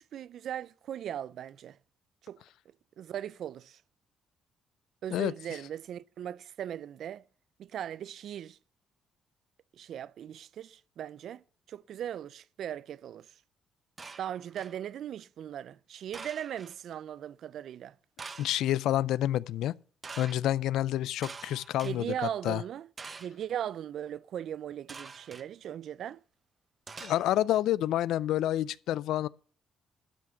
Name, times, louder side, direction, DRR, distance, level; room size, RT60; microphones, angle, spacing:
voice 1, 0.0-1.8 2.2-2.4 3.0-3.8 5.0-7.2 7.6-8.6 9.7-13.4 14.2-17.9 21.8-22.9 23.2-26.2, right 10 dB, 65° right, 0.4 m, -38 dB
sound 1, 14.0-14.8 16.1-16.8 18.2-18.7 20.0-20.4 21.2-21.9 23.0-23.5 24.9-25.5 26.9-27.6, right 4 dB, 30° right, 0.8 m, -45 dB
voice 2, 18.4-19.7 20.2-22.1 22.4-22.6 27.0-29.3, left 13 dB, 85° left, 0.4 m, -28 dB
12.5 x 6.1 x 7.1 m
cardioid pair, 130°, 0 cm